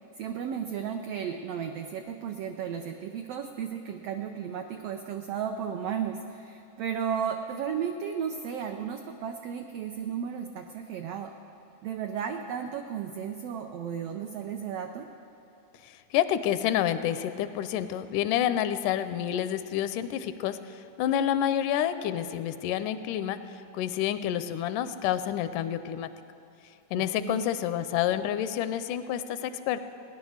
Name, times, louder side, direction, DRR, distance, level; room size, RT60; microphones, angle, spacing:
voice 1, 0.2-11.3 11.8-15.1 26.9-27.5, right 7 dB, 90° right, 5 dB, 1.3 m, -34 dB
voice 2, 16.1-20.6 21.0-23.4 23.7-26.1 26.9-29.8, left 10 dB, 85° left, 12 dB, 2.1 m, -28 dB
17.0 x 10.5 x 6.4 m, 2.9 s
omnidirectional pair, 3.6 m